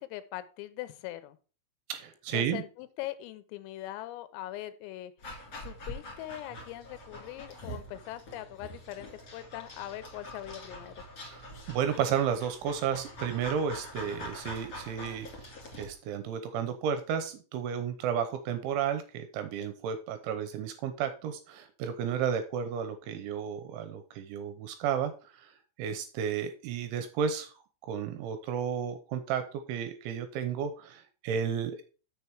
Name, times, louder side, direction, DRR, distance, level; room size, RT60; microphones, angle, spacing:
voice 1, 0.0-1.4 2.3-5.1 5.6-10.9, left 14 dB, 85° left, 12 dB, 3.4 m, -41 dB
voice 2, 1.9-2.6 11.2-27.5 27.8-31.8, right 8 dB, 80° right, 9 dB, 2.9 m, -33 dB
Dog, 5.2-15.9, equal, 40° left, 2.0 m, -44 dB
7.0 x 6.9 x 4.6 m, 0.36 s
omnidirectional pair, 5.9 m